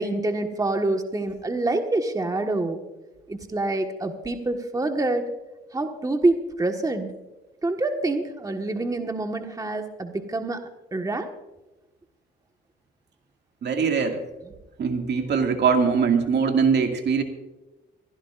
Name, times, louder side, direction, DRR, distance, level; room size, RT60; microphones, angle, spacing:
voice 1, 0.0-2.8 3.3-5.3 5.7-7.1 7.6-11.3, right 2 dB, 15° right, 5 dB, 1.5 m, -26 dB
voice 2, 13.6-14.2 14.8-17.2, right 5 dB, 60° right, 4 dB, 2.2 m, -22 dB
24.0 x 15.5 x 2.5 m, 1.1 s
cardioid pair, 90°, 20 cm